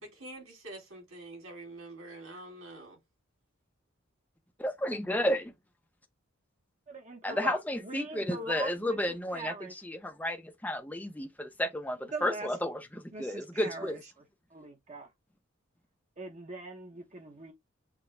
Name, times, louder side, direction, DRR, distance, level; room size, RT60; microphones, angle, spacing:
voice 1, 0.0-3.0, right 2 dB, 90° right, 3.1 m, -46 dB
voice 2, 4.6-5.5 7.2-9.5 9.8-14.0, left 1 dB, 10° left, 0.6 m, -32 dB
voice 3, 6.9-9.7 12.1-12.5 13.1-14.0 14.5-15.1 16.2-17.5, right 2 dB, 35° right, 0.9 m, -41 dB
6.0 x 2.2 x 3.2 m
head